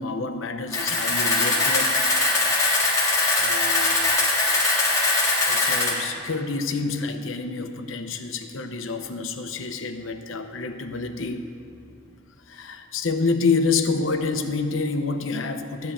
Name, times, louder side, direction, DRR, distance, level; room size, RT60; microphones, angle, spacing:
voice 1, 0.0-2.0 3.3-4.1 5.4-11.4 12.5-15.9, left 4 dB, 90° left, 7 dB, 0.8 m, -28 dB
Camera, 0.7-5.9, left 2 dB, 20° left, 1.8 m, -21 dB
12.5 x 5.5 x 8.4 m, 2.3 s
head